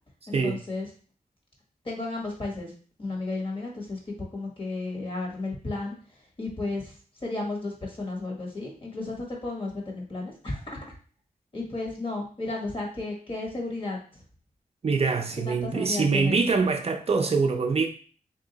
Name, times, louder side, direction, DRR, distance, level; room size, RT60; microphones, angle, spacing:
voice 1, 0.3-0.9 1.8-2.7 3.0-5.9 6.4-10.8 11.5-14.2 15.4-16.4, left 2 dB, 35° left, -1 dB, 1.3 m, -33 dB
voice 2, 14.8-17.9, right 4 dB, 40° right, 4 dB, 0.4 m, -24 dB
3.6 x 2.7 x 3.9 m, 0.42 s
wide cardioid pair, 105°, 15 cm